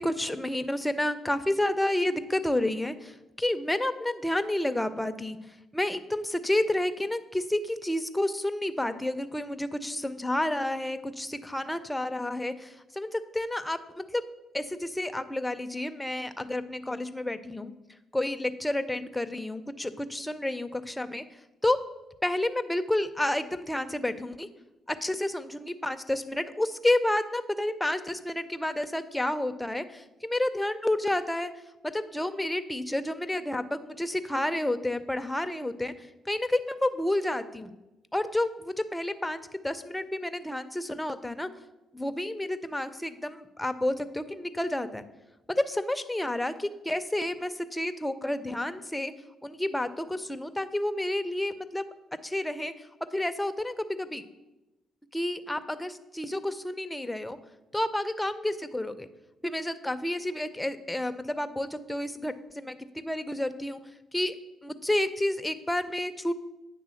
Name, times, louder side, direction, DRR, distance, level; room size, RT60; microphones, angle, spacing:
voice 1, 0.0-5.4 5.7-14.3 14.5-17.7 18.1-21.2 21.6-21.8 22.2-24.5 24.9-31.5 31.8-37.7 38.1-41.5 41.9-45.0 45.5-49.1 49.4-51.9 52.2-52.9 53.1-54.2 55.1-57.4 57.7-59.1 59.4-63.8 64.1-64.3 64.6-66.3, left 1 dB, 5° left, 9 dB, 0.5 m, -30 dB
9.1 x 3.5 x 6.3 m, 1.0 s
cardioid pair, 90°, 0 cm